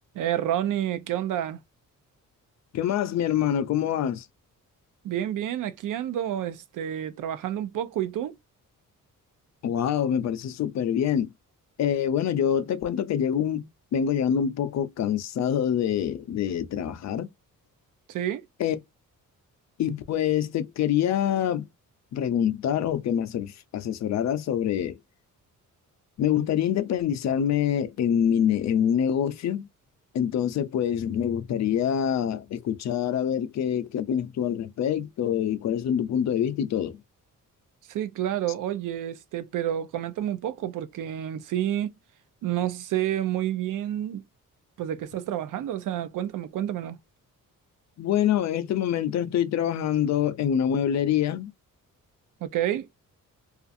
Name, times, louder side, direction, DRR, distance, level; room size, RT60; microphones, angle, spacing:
voice 1, 0.1-1.6 5.0-8.4 18.1-18.4 37.9-41.9 42.4-44.2 44.8-47.0 52.4-52.9, right 11 dB, 70° right, 0.5 m, -29 dB
voice 2, 2.7-4.2 9.6-11.3 11.8-17.3 18.6-18.8 19.8-21.7 22.1-25.0 26.2-29.7 30.1-37.0 48.0-51.5, left 9 dB, 55° left, 0.5 m, -25 dB
2.4 x 2.4 x 2.5 m
cardioid pair, 135°, 33 cm